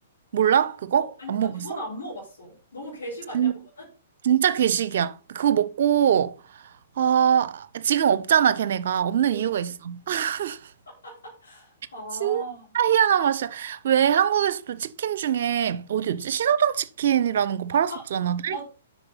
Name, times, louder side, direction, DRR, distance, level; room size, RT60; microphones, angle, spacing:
voice 1, 0.3-1.7 3.3-3.5 4.2-6.4 7.0-10.6 12.2-12.5 12.7-18.6, right 9 dB, 55° right, 0.8 m, -23 dB
voice 2, 0.9-3.9 9.3-9.4 10.9-12.6 17.9-18.0 18.5-18.6, equal, 70° left, 4.6 m, -38 dB
8.1 x 6.2 x 5.5 m
figure-of-eight pair, 115°, 0 cm